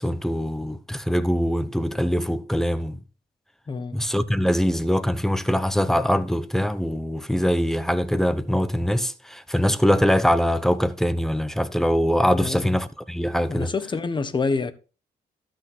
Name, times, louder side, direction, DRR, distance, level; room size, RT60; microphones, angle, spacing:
voice 1, 0.0-3.0 3.9-13.7, equal, ahead, 0.6 m, -23 dB
voice 2, 3.7-4.0 12.4-12.8 13.5-14.7, left 4 dB, 30° left, 0.8 m, -27 dB
12.5 x 6.3 x 4.3 m
cardioid pair, 110°, 17 cm